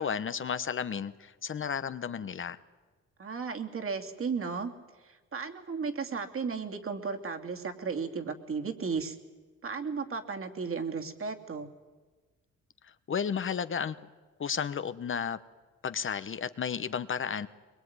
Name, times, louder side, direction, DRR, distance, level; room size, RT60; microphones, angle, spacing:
voice 1, 0.0-2.6 13.1-13.9 14.4-15.4 15.8-17.5, left 7 dB, 40° left, 12 dB, 1.0 m, -33 dB
voice 2, 3.2-4.7 5.0-9.2 9.6-11.7, right 5 dB, 45° right, 5 dB, 2.8 m, -34 dB
22.5 x 22.0 x 9.7 m, 1.3 s
cardioid pair, 90°, 30 cm